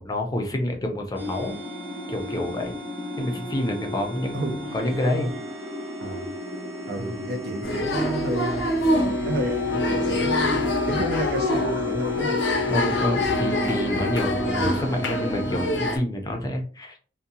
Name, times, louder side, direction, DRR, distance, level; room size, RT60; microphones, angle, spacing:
voice 1, 0.0-1.6 2.1-2.7 3.2-5.3 7.0-7.2 12.7-17.0, left 1 dB, 20° left, 3 dB, 0.5 m, -28 dB
sound 1, 1.1-15.9, left 4 dB, 10° right, 0.8 m, -32 dB
voice 2, 6.9-12.4, right 1 dB, 65° right, 4 dB, 0.5 m, -31 dB
sound 2, 7.6-16.0, left 1 dB, 85° left, 0.6 m, -25 dB
2.7 x 2.2 x 2.6 m, 0.39 s
head